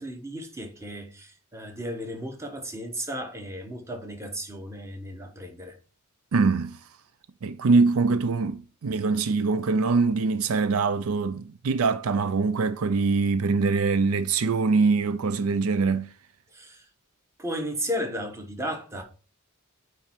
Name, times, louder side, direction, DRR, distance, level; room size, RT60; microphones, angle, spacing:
voice 1, 0.0-5.8 16.5-16.9 17.4-19.0, equal, 15° right, 1.1 m, -34 dB
voice 2, 6.3-6.8 7.4-16.1, right 4 dB, 75° right, 0.5 m, -23 dB
8.8 x 3.2 x 4.4 m
head